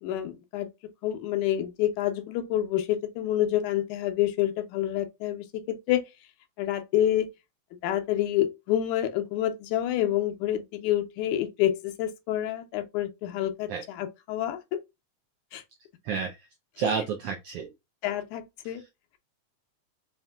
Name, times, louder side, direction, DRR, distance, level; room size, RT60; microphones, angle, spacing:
voice 1, 0.0-0.7 1.0-6.0 6.6-7.3 7.8-14.8 15.5-15.6 18.0-18.8, left 12 dB, 85° left, 2.1 m, -28 dB
voice 2, 16.0-16.4 16.8-17.7 18.6-18.8, right 6 dB, 90° right, 1.3 m, -30 dB
5.5 x 2.5 x 2.3 m
omnidirectional pair, 3.3 m